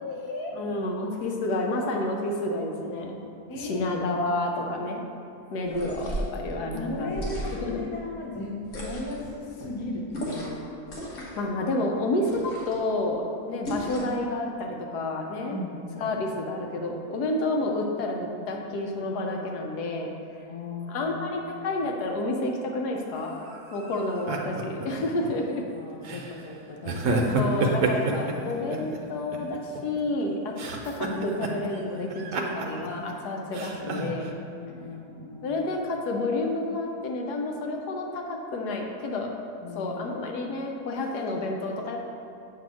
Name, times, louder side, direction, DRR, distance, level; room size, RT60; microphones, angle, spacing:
voice 1, 0.0-0.6 3.5-4.0 6.7-8.6 8.8-10.6 15.5-16.3 20.5-21.9 25.2-25.4 25.7-28.2 34.5-35.6 39.6-40.1, left 2 dB, 25° left, -2 dB, 0.7 m, -37 dB
voice 2, 0.5-3.2 3.6-5.0 5.5-7.2 7.6-7.8 11.1-15.6 16.0-20.1 20.9-23.4 23.7-25.6 27.1-30.5 30.8-34.3 35.4-39.3 39.7-42.0, left 2 dB, 85° left, 1 dB, 1.3 m, -30 dB
sound 1, 5.7-6.4 7.1-7.8 8.6-9.3 10.1-10.6 10.9-11.4 12.2-12.8 13.6-14.2, equal, 65° left, 1.7 m, -35 dB
sound 2, 23.1-25.3 26.0-26.3 26.8-29.0 29.3-30.2 30.6-31.8 32.1-33.1 33.5-34.3, right 3 dB, 65° right, 1.1 m, -30 dB
8.2 x 2.8 x 6.1 m, 2.5 s
omnidirectional pair, 1.7 m